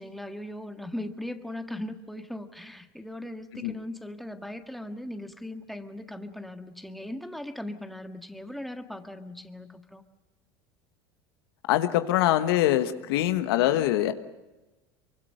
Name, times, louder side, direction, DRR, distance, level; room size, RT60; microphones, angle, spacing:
voice 1, 0.0-10.0, left 1 dB, ahead, 6 dB, 1.7 m, -39 dB
voice 2, 11.7-14.1, left 13 dB, 75° left, 9 dB, 1.3 m, -23 dB
24.0 x 24.0 x 6.5 m, 1.1 s
hypercardioid pair, 85°, 13 cm